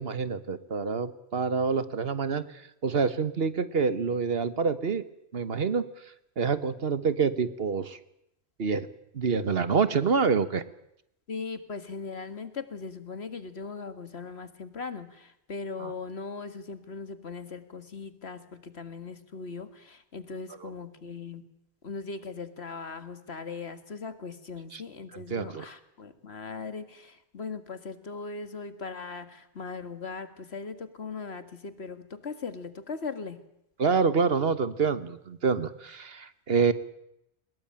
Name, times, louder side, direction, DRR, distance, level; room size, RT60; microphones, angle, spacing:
voice 1, 0.0-5.0 5.3-5.9 6.4-8.0 8.6-8.9 9.1-10.6 15.8-15.9 20.6-20.7 24.7-24.8 25.1-25.7 33.8-36.7, right 5 dB, 70° right, 13 dB, 1.5 m, -27 dB
voice 2, 11.3-21.4 21.8-33.4, left 4 dB, 80° left, 10 dB, 2.2 m, -39 dB
23.5 x 20.5 x 8.9 m, 0.79 s
omnidirectional pair, 1.1 m